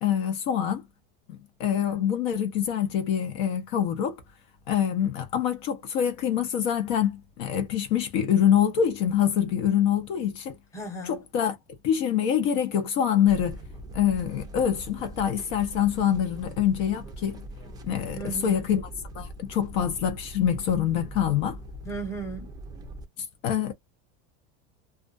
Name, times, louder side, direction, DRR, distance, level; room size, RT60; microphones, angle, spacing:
voice 1, 0.0-0.8 1.3-4.2 4.7-10.6 11.1-11.6 11.8-13.6 13.9-17.4 17.8-18.8 19.1-21.6 23.4-23.7, left 9 dB, 50° left, 0.7 m, -25 dB
voice 2, 10.7-11.2 18.1-18.7 21.8-22.5, right 3 dB, 10° left, 0.9 m, -36 dB
sound 1, 13.3-23.0, right 1 dB, 15° right, 0.5 m, -42 dB
2.4 x 2.3 x 2.4 m
supercardioid pair, 165°, 30 cm